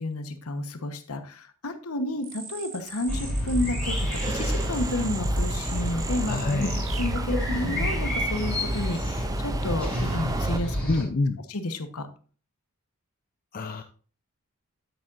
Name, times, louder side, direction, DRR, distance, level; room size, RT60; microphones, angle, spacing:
voice 1, 0.0-3.9 4.3-6.7 7.0-10.8 11.5-12.1, left 1 dB, 80° left, 8 dB, 1.1 m, -31 dB
sound 1, 2.2-8.1, right 2 dB, 65° right, 3.1 m, -38 dB
sound 2, 3.1-11.0, equal, 5° left, 4.0 m, -29 dB
Subway metro underground, 3.8-10.6, right 2 dB, 15° right, 0.4 m, -35 dB
voice 2, 6.2-6.8 10.9-11.4 13.5-13.8, left 3 dB, 40° left, 7 dB, 0.5 m, -27 dB
9.2 x 8.6 x 2.5 m, 0.41 s
head